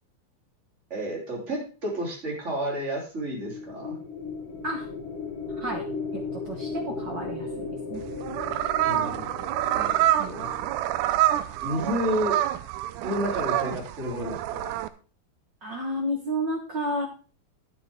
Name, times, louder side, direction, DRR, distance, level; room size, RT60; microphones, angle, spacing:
voice 1, 0.9-4.0 8.8-9.2 9.7-10.0 10.2-10.5 11.6-12.3 13.0-14.7, equal, 20° right, -2 dB, 3.4 m, -31 dB
sound 1, 3.3-11.7, left 4 dB, 65° left, 4.7 m, -36 dB
voice 2, 5.5-5.9 6.1-8.0 10.2-10.3 15.6-17.1, equal, 60° right, 1 dB, 1.2 m, -31 dB
sound 2, 8.0-14.9, right 13 dB, 80° right, 2.0 m, -27 dB
12.5 x 7.6 x 3.6 m, 0.37 s
omnidirectional pair, 4.1 m